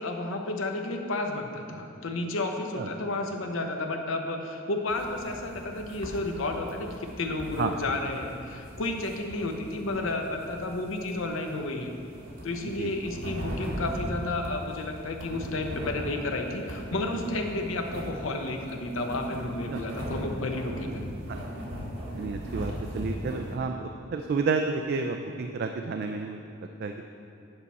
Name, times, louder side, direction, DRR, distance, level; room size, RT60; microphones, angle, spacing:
voice 1, 0.0-11.9 12.4-21.1, left 2 dB, 75° left, 3 dB, 0.8 m, -32 dB
sound 1, 4.9-23.5, equal, 75° right, 1.7 m, -39 dB
voice 2, 22.1-26.4 26.8-27.1, right 4 dB, 50° right, 5 dB, 0.3 m, -30 dB
9.6 x 5.7 x 4.2 m, 2.6 s
head